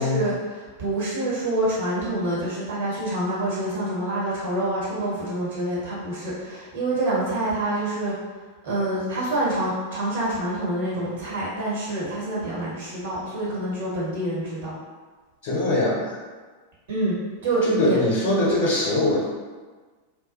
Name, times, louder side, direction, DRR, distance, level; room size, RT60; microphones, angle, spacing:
voice 1, 0.0-8.1 8.6-14.7 16.9-17.2 17.4-18.0, right 1 dB, 60° right, -8 dB, 1.1 m, -27 dB
voice 2, 15.4-16.2 17.6-19.2, left 1 dB, 45° left, -5 dB, 0.6 m, -22 dB
2.3 x 2.2 x 2.6 m, 1.4 s
figure-of-eight pair, 90°, 0 cm